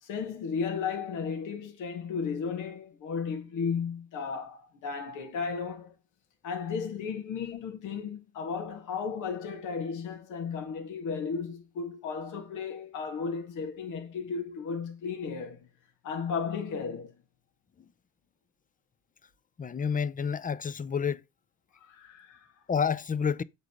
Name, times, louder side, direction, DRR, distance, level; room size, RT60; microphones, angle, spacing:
voice 1, 0.0-5.9 6.4-15.7 16.0-17.2 21.7-22.5, left 5 dB, 85° left, 2.5 m, -34 dB
voice 2, 19.6-21.2 22.7-23.4, left 6 dB, 25° left, 0.6 m, -29 dB
8.1 x 4.0 x 6.4 m
cardioid pair, 90°, 30 cm